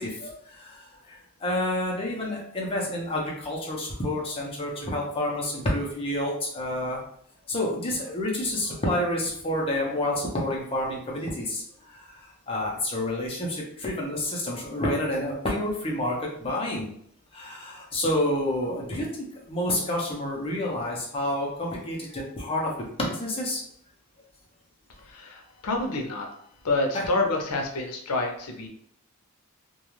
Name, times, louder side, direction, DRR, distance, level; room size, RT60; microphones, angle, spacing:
voice 1, 0.0-7.0 7.5-16.9 17.3-23.6 26.9-27.0, left 1 dB, 25° left, -2 dB, 0.6 m, -29 dB
voice 2, 25.0-26.3 26.6-28.7, left 2 dB, 90° left, 2 dB, 0.6 m, -28 dB
2.4 x 2.3 x 3.0 m, 0.67 s
head